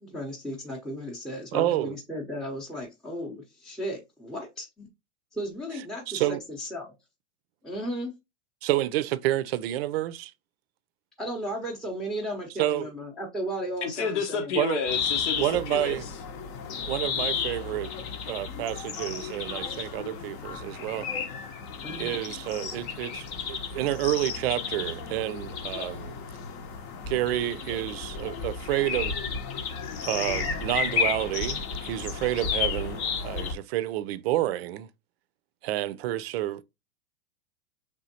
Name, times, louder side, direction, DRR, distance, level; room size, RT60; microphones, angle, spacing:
voice 1, 0.0-4.9 5.3-6.9 7.6-8.1 11.2-14.5 21.8-22.2, equal, ahead, 0.7 m, -35 dB
voice 2, 1.5-1.9 6.1-6.4 8.6-10.3 12.6-12.9 14.6-14.8 15.4-16.0 16.9-17.9 18.3-21.1 22.0-26.2 27.1-29.2 30.0-34.9 35.6-36.6, right 14 dB, 55° right, 0.5 m, -29 dB
voice 3, 13.8-16.2, left 6 dB, 70° left, 1.0 m, -31 dB
sound 1, 14.9-33.5, left 6 dB, 40° left, 0.8 m, -33 dB
4.9 x 3.6 x 2.8 m
hypercardioid pair, 135°, 36 cm